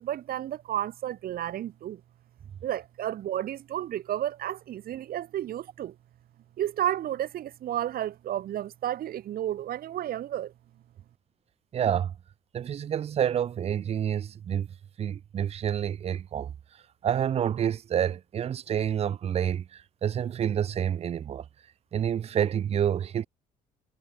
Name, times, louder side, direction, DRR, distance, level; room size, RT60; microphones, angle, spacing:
voice 1, 0.0-2.0 2.6-5.9 6.6-10.5, right 12 dB, 60° right, 2.9 m, -32 dB
voice 2, 11.7-12.1 12.5-14.7 15.0-16.5 17.0-21.4 21.9-23.3, right 9 dB, 35° right, 0.5 m, -28 dB
cardioid pair, 110°, 17 cm